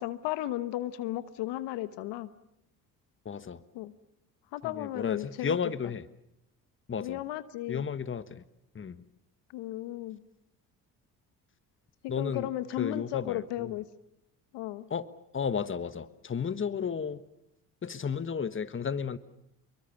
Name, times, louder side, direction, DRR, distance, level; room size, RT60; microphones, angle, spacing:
voice 1, 0.0-2.3 3.7-3.9 4.5-5.6 7.0-7.8 9.5-10.2 12.2-13.8 14.5-14.9, left 14 dB, 75° left, 15 dB, 1.1 m, -35 dB
voice 2, 3.2-3.6 4.6-6.0 6.9-7.2 7.7-8.4 8.7-9.0 12.1-12.5 12.8-13.8 14.9-15.1 15.3-17.2 17.8-19.2, left 6 dB, 30° left, 14 dB, 1.3 m, -33 dB
26.5 x 23.0 x 7.1 m, 0.82 s
hypercardioid pair, 65°, 42 cm